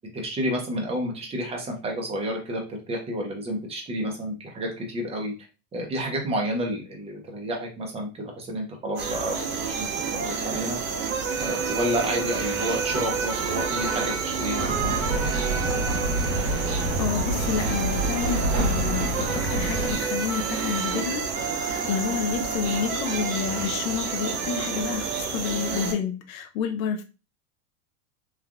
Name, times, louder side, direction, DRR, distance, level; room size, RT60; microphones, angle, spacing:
voice 1, 0.1-5.3 5.7-9.4 9.6-9.9 10.1-10.8 11.4-15.2, equal, 15° right, 0.7 m, -30 dB
sound 1, 9.0-25.9, right 5 dB, 70° right, 1.3 m, -29 dB
sound 2, 14.6-20.0, right 2 dB, 50° right, 1.3 m, -27 dB
voice 2, 17.0-21.4 21.7-27.0, left 7 dB, 75° left, 0.6 m, -29 dB
3.2 x 2.4 x 2.3 m
supercardioid pair, 135°, 42 cm